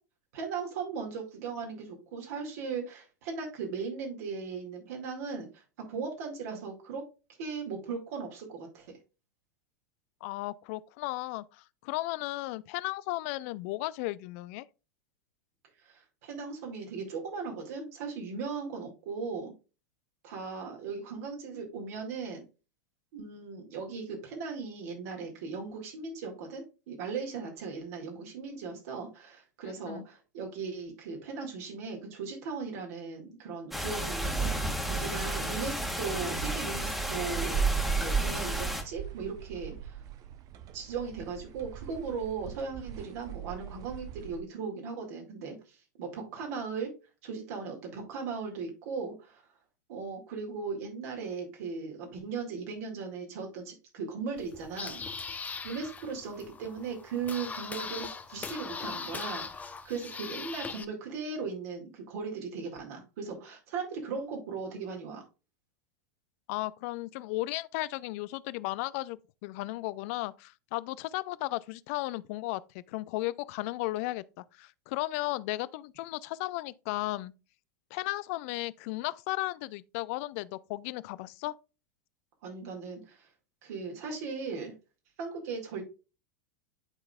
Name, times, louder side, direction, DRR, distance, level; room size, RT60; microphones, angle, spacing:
voice 1, 0.3-5.6 5.9-7.0 7.4-8.9 15.8-19.5 20.2-22.4 23.1-37.6 38.0-40.0 40.7-46.9 47.2-49.4 49.9-55.0 55.6-65.2 82.4-83.3 83.6-84.7 85.2-85.8, right 5 dB, 60° right, 1.9 m, -38 dB
voice 2, 10.2-14.7 29.9-30.1 66.5-77.3 77.9-81.6, left 19 dB, 55° left, 0.4 m, -35 dB
sound 1, 33.7-38.8, right 2 dB, ahead, 1.5 m, -30 dB
sound 2, 36.1-44.4, right 11 dB, 40° right, 0.7 m, -44 dB
sound 3, 54.4-60.8, left 5 dB, 15° left, 0.7 m, -40 dB
11.0 x 3.9 x 2.3 m
hypercardioid pair, 95°, 9 cm